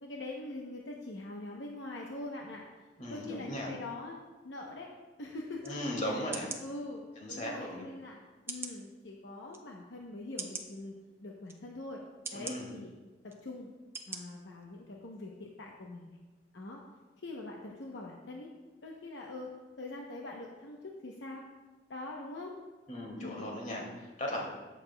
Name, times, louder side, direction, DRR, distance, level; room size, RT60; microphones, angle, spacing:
voice 1, 0.0-4.2 4.4-4.9 5.2-5.8 6.0-6.2 6.6-8.2 8.5-10.9 11.2-12.0 12.3-12.9 13.2-13.7 14.1-16.2 16.5-16.8 17.2-18.5 18.8-19.5 19.8-21.4 21.9-22.5 23.1-23.6, left 2 dB, 75° left, -1 dB, 0.8 m, -43 dB
voice 2, 3.0-3.7 5.6-6.5 7.2-7.9 12.3-12.7 22.9-24.5, left 1 dB, 45° left, -1 dB, 2.1 m, -37 dB
sound 1, 5.6-5.7 6.3-6.6 7.4-7.5 8.5-8.8 9.5-9.6 10.4-10.7 11.5-11.6 12.2-12.6 13.3-13.4 13.9-14.2 14.6-14.7, right 4 dB, 15° right, 0.6 m, -40 dB
14.0 x 6.4 x 2.2 m, 1.2 s
head